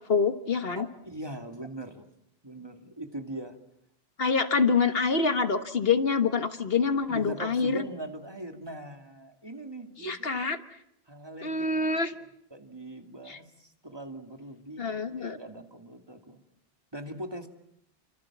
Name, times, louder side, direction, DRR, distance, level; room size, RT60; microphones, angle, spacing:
voice 1, 0.1-0.8 4.2-7.8 10.0-10.6 11.4-12.1 13.3-13.4 14.8-15.4, left 5 dB, 70° left, 9 dB, 1.7 m, -26 dB
voice 2, 0.7-2.0 2.4-3.6 7.1-10.4 11.1-12.2 12.5-16.4 16.9-17.5, right 1 dB, 25° right, 4 dB, 2.6 m, -41 dB
29.5 x 26.0 x 7.4 m, 0.74 s
omnidirectional pair, 1.0 m